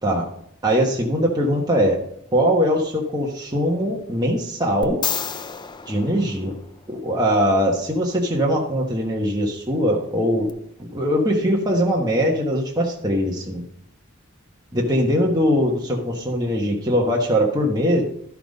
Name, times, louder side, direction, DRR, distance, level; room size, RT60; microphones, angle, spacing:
voice 1, 0.6-2.0 2.3-5.0 5.9-6.5 6.9-10.5 10.8-13.6 14.7-18.0, equal, 20° right, -2 dB, 1.2 m, -21 dB
sound 1, 4.8-7.1 10.5-10.6, left 7 dB, 20° left, 0.4 m, -30 dB
12.0 x 5.9 x 5.3 m, 0.71 s
head